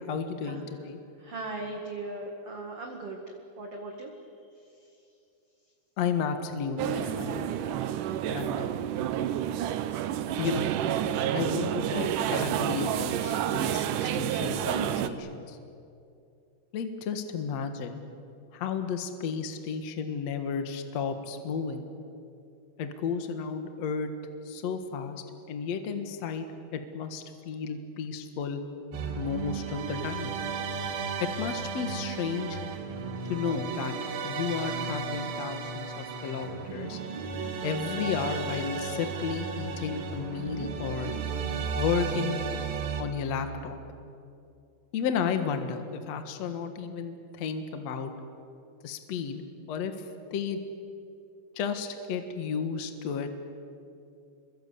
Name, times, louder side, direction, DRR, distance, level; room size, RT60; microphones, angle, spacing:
voice 1, 0.1-1.0 6.0-7.5 8.3-8.7 10.4-10.7 11.3-15.6 16.7-18.0 18.5-21.9 22.8-24.1 24.5-26.5 26.7-28.6 29.1-30.3 31.4-32.6 33.3-33.9 34.2-37.0 37.6-41.1 41.8-42.4 43.0-43.8 44.9-48.1 48.8-49.4 49.7-49.9 50.3-50.6 51.6-53.3, left 6 dB, 55° left, 7 dB, 2.0 m, -33 dB
voice 2, 1.2-3.2 3.6-4.1 7.8-7.9, right 2 dB, 45° right, 2 dB, 2.2 m, -38 dB
sound 1, 6.8-15.1, right 10 dB, 90° right, 1.8 m, -29 dB
sound 2, 28.9-43.0, right 5 dB, 60° right, 3.5 m, -34 dB
28.0 x 23.0 x 8.4 m, 2.5 s
omnidirectional pair, 5.0 m